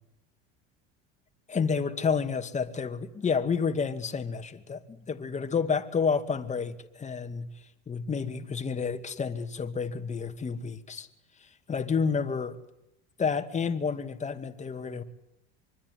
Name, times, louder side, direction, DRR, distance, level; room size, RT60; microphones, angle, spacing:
voice 1, 1.5-7.5 7.9-11.1 11.7-12.6 13.2-15.0, left 5 dB, 25° left, 2.4 m, -30 dB
25.0 x 24.0 x 9.8 m
supercardioid pair, 110°, 31 cm